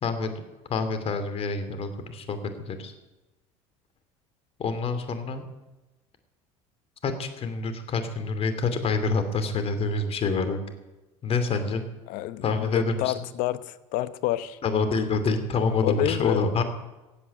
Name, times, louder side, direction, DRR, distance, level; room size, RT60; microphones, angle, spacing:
voice 1, 0.0-0.4 0.7-2.4 2.7-2.9 4.6-5.4 7.0-10.6 11.2-11.8 12.4-13.3 14.6-16.6, left 4 dB, 40° left, 8 dB, 2.7 m, -27 dB
voice 2, 12.1-14.6 15.8-16.6, left 15 dB, 65° left, 15 dB, 0.9 m, -29 dB
15.5 x 8.4 x 9.4 m, 1.1 s
hypercardioid pair, 85°, 15 cm